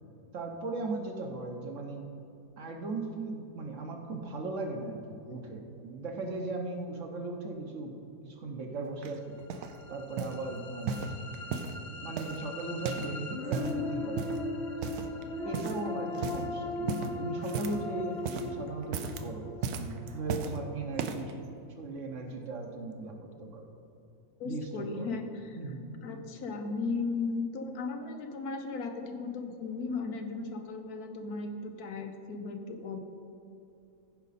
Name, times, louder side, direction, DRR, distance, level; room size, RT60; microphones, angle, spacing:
voice 1, 0.3-2.1 2.6-8.0 8.2-9.4 9.9-11.0 12.0-14.3 15.4-21.4 21.8-23.7 24.4-25.2 25.6-25.9, right 3 dB, 60° right, 2 dB, 1.2 m, -38 dB
sound 1, 9.0-9.8 10.2-10.4 10.8-11.8 12.2-13.2 13.4-13.8 14.2-14.5 14.8-15.2 15.5-15.9 16.1-16.5 16.9-17.9 18.1-18.5 18.8-19.3 19.6-20.6 21.0-21.3 22.0-22.1, right 6 dB, 90° right, 1.1 m, -35 dB
sound 2, 9.5-21.5, left 2 dB, 50° left, 1.0 m, -39 dB
voice 2, 24.4-25.6 26.0-33.0, left 4 dB, 80° left, 5 dB, 1.3 m, -36 dB
15.0 x 5.2 x 4.1 m, 2.8 s
omnidirectional pair, 1.6 m